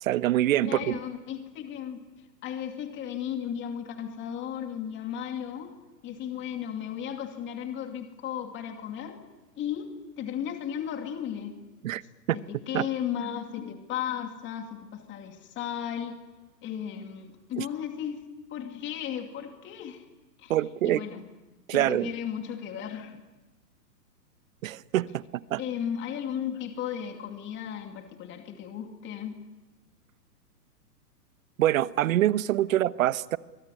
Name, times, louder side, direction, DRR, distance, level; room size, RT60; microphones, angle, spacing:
voice 1, 0.0-1.0 11.8-12.0 12.3-12.4 12.7-12.8 17.6-17.7 20.5-21.0 21.7-22.1 24.6-25.2 25.5-25.6 31.6-33.4, right 13 dB, 50° right, 1.0 m, -25 dB
voice 2, 0.6-2.0 2.4-5.7 6.0-9.2 9.6-11.6 12.3-16.2 16.6-20.0 20.4-20.5 20.8-21.3 21.7-23.2 25.6-29.4, left 9 dB, 20° left, 2.5 m, -35 dB
25.0 x 24.0 x 9.9 m
hypercardioid pair, 130°, 50 cm